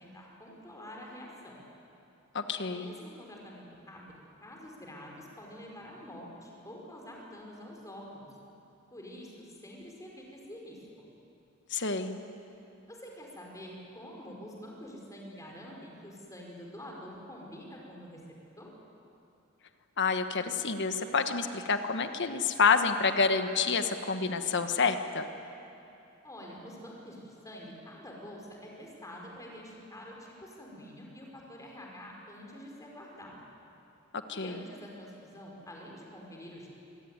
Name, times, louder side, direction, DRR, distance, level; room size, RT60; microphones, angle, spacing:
voice 1, 0.0-1.5 2.7-8.3 8.9-10.8 12.9-18.2 18.6-18.7 26.2-33.4 34.3-36.7, equal, 15° left, -1 dB, 5.0 m, -47 dB
voice 2, 2.3-2.9 11.7-12.2 20.0-25.3 34.3-34.6, left 5 dB, 55° left, 8 dB, 1.4 m, -28 dB
25.0 x 18.5 x 9.6 m, 2.8 s
head